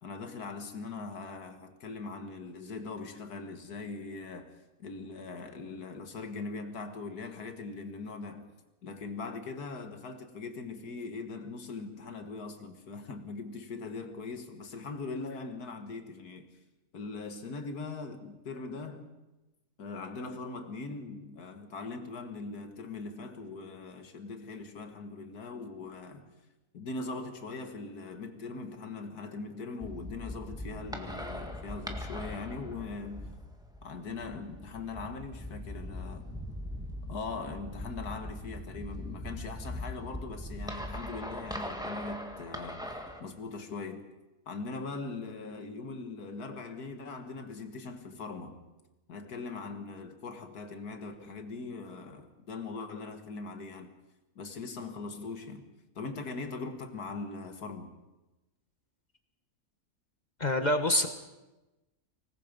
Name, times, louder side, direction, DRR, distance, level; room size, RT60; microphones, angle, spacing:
voice 1, 0.0-4.5 4.8-8.5 8.8-16.5 16.9-19.1 19.8-26.3 26.7-33.3 33.8-36.3 37.1-42.9 43.2-44.0 44.5-48.6 49.1-53.9 54.4-55.6 56.0-57.9, left 3 dB, 80° left, 2.2 m, -41 dB
sound 1, 29.8-43.2, left 1 dB, 5° right, 1.7 m, -41 dB
voice 2, 60.4-61.1, left 1 dB, 30° left, 1.2 m, -26 dB
25.0 x 19.5 x 5.3 m
omnidirectional pair, 1.6 m